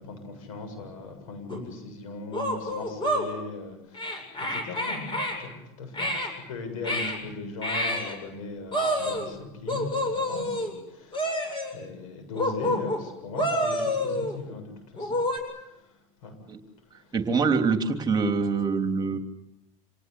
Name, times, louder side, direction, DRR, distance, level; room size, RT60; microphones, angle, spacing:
voice 1, 0.0-15.2 15.6-15.8 16.2-16.4 17.0-17.2, left 3 dB, 85° left, 7 dB, 7.7 m, -39 dB
sound 1, 1.5-1.6 2.3-3.3 3.9-5.4 5.9-6.3 6.8-7.2 7.6-8.1 8.7-9.3 9.7-10.7 11.1-11.7 12.3-13.0 13.3-14.4 15.0-15.4, equal, 30° left, 7.8 m, -28 dB
voice 2, 17.1-19.2, right 4 dB, 25° right, 6 dB, 3.2 m, -24 dB
27.5 x 19.0 x 9.7 m, 0.88 s
supercardioid pair, 105°, 17 cm